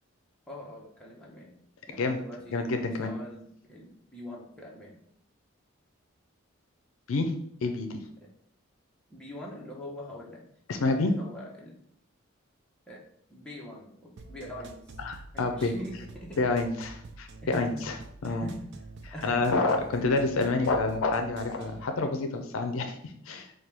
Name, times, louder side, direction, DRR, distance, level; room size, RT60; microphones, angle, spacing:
voice 1, 0.5-1.5 1.9-5.0 9.1-10.4 10.8-11.8 12.9-13.0 13.3-15.0 15.3-16.4 17.4-17.8 18.2-18.7 19.1-19.6 19.9-20.2, equal, 5° left, -4 dB, 0.7 m, -43 dB
voice 2, 2.5-3.1 7.1-7.3 7.6-8.0 10.7-11.1 15.0-15.7 16.4-18.0 18.2-18.5 19.2-23.5, left 3 dB, 75° left, 6 dB, 0.4 m, -28 dB
sound 1, 14.2-21.8, right 3 dB, 55° right, 0.3 m, -47 dB
4.4 x 2.2 x 3.3 m, 0.68 s
head